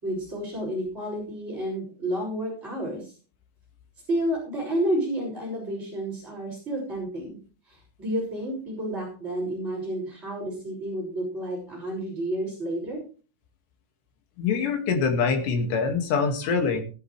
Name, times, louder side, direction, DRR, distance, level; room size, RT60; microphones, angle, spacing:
voice 1, 0.0-3.1 4.1-7.4 7.7-13.0, right 1 dB, 15° right, -5 dB, 5.8 m, -30 dB
voice 2, 14.4-16.8, left 5 dB, 65° left, 4 dB, 4.1 m, -24 dB
18.5 x 11.0 x 3.3 m, 0.38 s
omnidirectional pair, 5.6 m